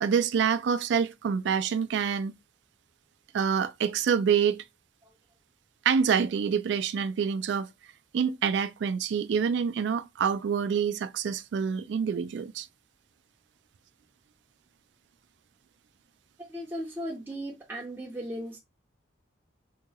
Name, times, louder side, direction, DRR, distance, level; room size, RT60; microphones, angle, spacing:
voice 1, 0.0-2.3 3.3-4.6 5.9-7.7 8.1-12.7, right 7 dB, 65° right, 0.3 m, -26 dB
voice 2, 16.4-18.6, equal, 10° right, 0.5 m, -37 dB
2.8 x 2.2 x 2.9 m
head